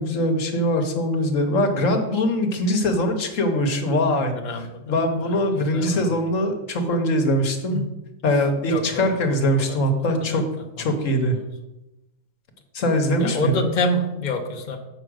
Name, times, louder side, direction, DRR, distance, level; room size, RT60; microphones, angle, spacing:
voice 1, 0.0-4.3 4.9-7.8 8.2-10.4 10.8-11.4 12.7-13.6, left 1 dB, 65° left, 5 dB, 1.5 m, -22 dB
voice 2, 4.1-6.1 7.7-7.8 8.7-10.4 13.2-14.8, left 1 dB, 35° left, 4 dB, 1.0 m, -28 dB
7.5 x 5.0 x 6.3 m, 0.95 s
omnidirectional pair, 1.5 m